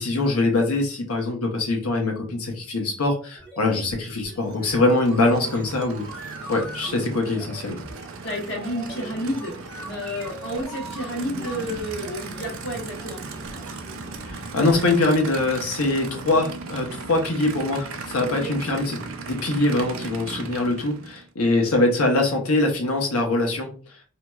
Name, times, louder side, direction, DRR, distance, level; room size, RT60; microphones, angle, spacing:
voice 1, 0.0-6.0 6.5-7.8 14.3-19.0 19.3-23.7, left 2 dB, 90° left, 2 dB, 0.9 m, -23 dB
sound 1, 3.4-14.9, right 1 dB, 5° left, 0.8 m, -42 dB
Aircraft / Idling, 4.3-21.3, right 4 dB, 65° right, 0.5 m, -37 dB
voice 2, 8.2-9.5 9.9-13.2 18.3-18.5, equal, 60° left, 0 dB, 1.1 m, -30 dB
2.9 x 2.8 x 2.3 m, 0.38 s
head